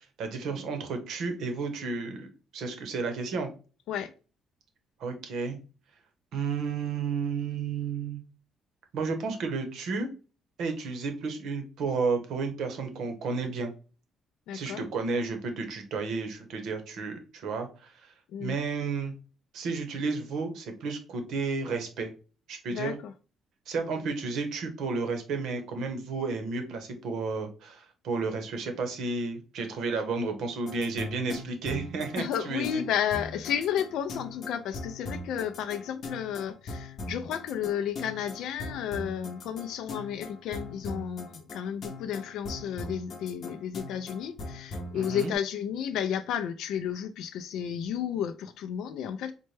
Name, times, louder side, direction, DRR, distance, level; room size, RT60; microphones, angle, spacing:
voice 1, 0.2-2.3 2.5-3.5 5.0-5.6 6.3-8.2 8.9-10.1 10.6-13.7 14.5-18.1 18.4-19.1 19.5-22.1 22.5-22.9 23.7-32.8 44.9-45.3, right 4 dB, 65° right, 0.8 m, -32 dB
voice 2, 14.5-14.8 18.3-18.6 22.7-23.1 32.2-49.3, left 9 dB, 75° left, 0.3 m, -32 dB
sound 1, 30.7-45.3, left 2 dB, 45° left, 0.7 m, -40 dB
4.1 x 2.2 x 3.2 m
cardioid pair, 165°, 0 cm